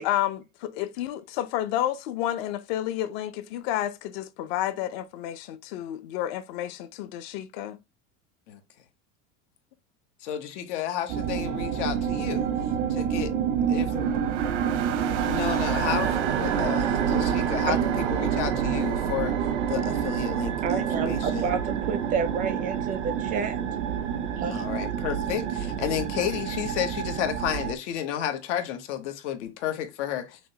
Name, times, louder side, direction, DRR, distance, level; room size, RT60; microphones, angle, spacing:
voice 1, 0.0-7.8, left 12 dB, 60° left, 0.6 m, -30 dB
voice 2, 10.2-12.5 12.9-13.3 13.7-14.2 15.2-19.4 19.7-21.5 24.5-30.4, left 10 dB, 90° left, 1.1 m, -32 dB
sound 1, 11.1-27.7, right 8 dB, 85° right, 0.8 m, -27 dB
voice 3, 20.6-23.6 24.4-24.6, right 6 dB, 25° right, 0.4 m, -30 dB
6.0 x 2.2 x 2.7 m
cardioid pair, 165°, 34 cm